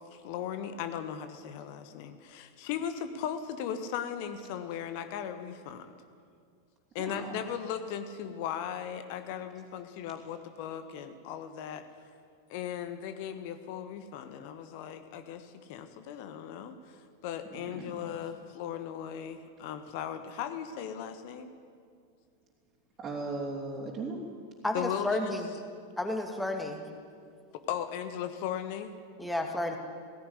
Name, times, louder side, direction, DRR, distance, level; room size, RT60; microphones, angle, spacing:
voice 1, 0.1-5.9 6.9-11.8 12.5-21.5 24.7-25.4 26.3-26.4 27.5-28.9, left 9 dB, 45° left, 9 dB, 1.3 m, -37 dB
voice 2, 7.0-7.4 17.6-18.0 23.0-24.2, right 3 dB, 25° right, -5 dB, 3.4 m, -37 dB
voice 3, 24.6-25.5 26.0-26.8 29.2-29.8, left 1 dB, 5° left, 4 dB, 2.4 m, -31 dB
17.5 x 16.5 x 9.9 m, 2.2 s
figure-of-eight pair, 90°, 0 cm